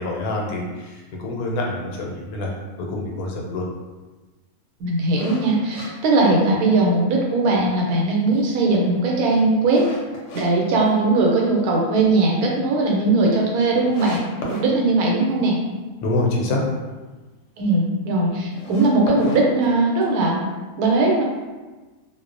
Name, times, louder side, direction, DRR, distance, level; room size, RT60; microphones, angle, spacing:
voice 1, 0.0-3.6 16.0-16.6, left 2 dB, 85° left, -1 dB, 1.1 m, -26 dB
voice 2, 4.8-9.8 10.3-14.2 14.6-15.6 17.6-20.4 20.8-21.2, right 2 dB, 90° right, -1 dB, 1.1 m, -19 dB
sound 1, 5.2-6.9 7.3-7.4 7.9-10.5 10.8-11.6 11.9-12.0 12.4-12.5 12.7-12.8 13.4-13.5 13.9-14.7 18.4-20.3, equal, 65° left, 0.8 m, -35 dB
2.5 x 2.0 x 2.5 m, 1.2 s
omnidirectional pair, 1.5 m